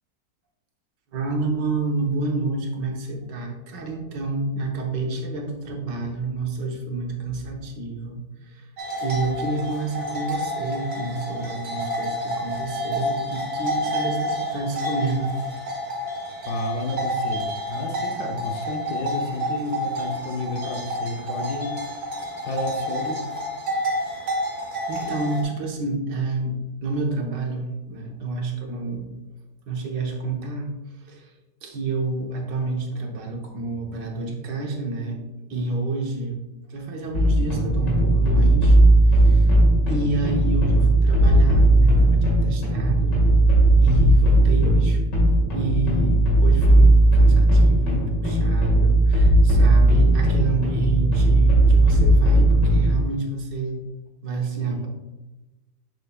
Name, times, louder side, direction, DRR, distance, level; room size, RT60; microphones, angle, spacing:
voice 1, 1.1-8.7 9.0-15.4 24.9-26.6 26.8-29.1 29.7-30.7 31.1-31.3 31.6-35.2 35.5-36.4 36.7-38.8 39.1-39.5 39.9-43.2 43.8-45.0 45.5-53.8 54.2-54.9, right 3 dB, 90° right, 2 dB, 1.7 m, -29 dB
sound 1, 8.8-25.4, equal, 60° right, 2.1 m, -29 dB
voice 2, 16.4-21.8 22.4-23.2 54.6-54.8, left 2 dB, 65° left, 4 dB, 1.2 m, -31 dB
sound 2, 37.1-53.1, right 1 dB, 85° left, 2.4 m, -17 dB
7.0 x 6.7 x 2.3 m, 1.1 s
omnidirectional pair, 1.8 m